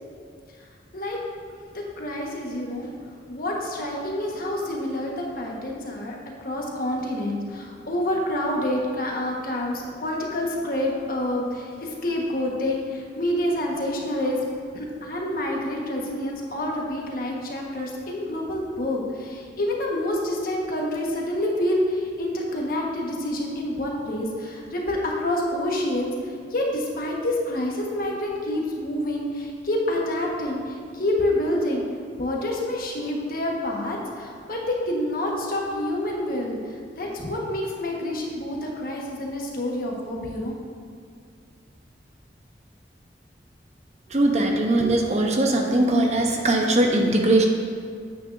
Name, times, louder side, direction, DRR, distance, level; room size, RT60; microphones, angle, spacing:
voice 1, 1.7-14.5 14.7-31.8 32.2-40.6, left 1 dB, 55° left, -1 dB, 1.3 m, -28 dB
voice 2, 44.1-47.5, right 1 dB, 40° right, 2 dB, 0.8 m, -20 dB
9.3 x 8.8 x 2.6 m, 2.2 s
head